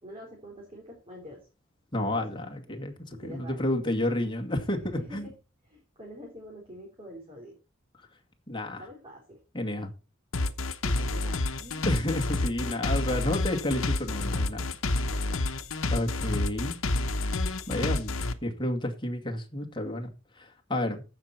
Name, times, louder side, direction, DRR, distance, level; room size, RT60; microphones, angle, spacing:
voice 1, 0.0-1.5 2.0-2.3 2.7-3.6 4.8-5.3 5.6-7.6 8.8-9.4 10.8-12.0 12.6-12.8 15.1-15.4, equal, 25° right, 3.6 m, -46 dB
voice 2, 1.9-2.9 3.2-5.3 8.5-8.8 9.5-9.9 11.9-14.7 15.9-16.8 17.7-21.0, left 1 dB, 25° left, 2.1 m, -30 dB
sound 1, 10.3-18.3, left 2 dB, 85° left, 1.0 m, -29 dB
14.5 x 5.9 x 4.4 m
head